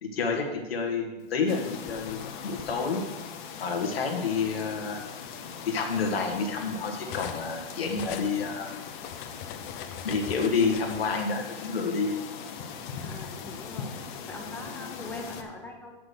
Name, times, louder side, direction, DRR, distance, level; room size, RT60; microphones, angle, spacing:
voice 1, 0.0-3.0 3.6-5.0 5.6-8.7 10.0-12.1, left 4 dB, 90° left, 2 dB, 1.4 m, -29 dB
sound 1, 1.5-15.4, left 6 dB, 55° left, 1.1 m, -40 dB
Cutlery silverware, 1.5-2.7 3.7-3.9 4.3-7.6 7.8-11.0, left 9 dB, 40° left, 0.6 m, -42 dB
voice 2, 13.0-13.9 14.3-16.0, left 2 dB, 5° left, 1 dB, 1.2 m, -41 dB
6.3 x 5.9 x 6.5 m, 1.2 s
hypercardioid pair, 120°, 29 cm